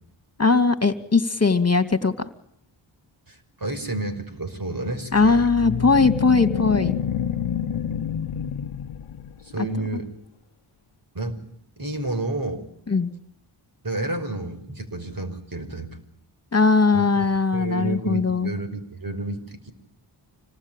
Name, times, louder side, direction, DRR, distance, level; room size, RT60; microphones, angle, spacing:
voice 1, 0.4-2.1 5.1-6.9 12.9-13.1 16.5-18.5, left 4 dB, 30° left, 10 dB, 2.5 m, -19 dB
voice 2, 3.3-5.5 9.4-10.1 11.1-11.4 11.8-12.7 13.8-16.0 16.9-17.1 17.5-19.7, right 2 dB, 45° right, 7 dB, 5.7 m, -30 dB
sound 1, 5.1-9.5, left 9 dB, 85° left, 1.1 m, -28 dB
27.0 x 18.5 x 9.1 m, 0.73 s
cardioid pair, 45°, 49 cm